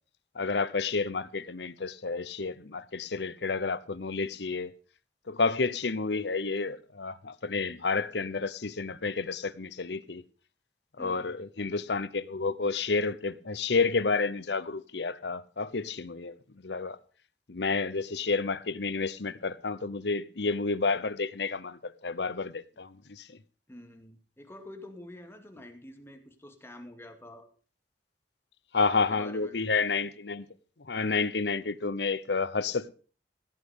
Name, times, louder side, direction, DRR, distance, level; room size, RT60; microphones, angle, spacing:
voice 1, 0.3-4.7 5.3-10.2 11.0-16.3 16.6-17.0 17.5-23.3 28.7-30.5 30.8-32.9, left 4 dB, 70° left, 0.9 m, -30 dB
voice 2, 11.0-11.4 23.7-27.5 29.1-29.5, left 1 dB, 15° left, 2.3 m, -47 dB
16.0 x 8.6 x 5.3 m
head